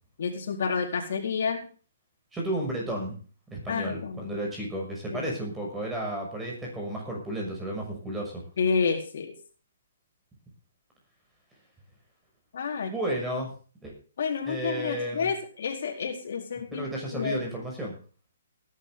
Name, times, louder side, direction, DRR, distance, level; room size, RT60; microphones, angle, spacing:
voice 1, 0.2-1.7 3.7-4.3 5.1-5.3 8.6-9.3 12.5-12.9 14.2-16.9 17.1-17.4, left 5 dB, 60° left, 2 dB, 4.3 m, -29 dB
voice 2, 2.3-3.2 3.5-8.4 12.9-13.5 13.8-13.9 14.5-15.3 16.7-18.0, right 1 dB, 5° right, -1 dB, 6.4 m, -32 dB
19.0 x 11.0 x 3.8 m, 0.39 s
hypercardioid pair, 160°, 0 cm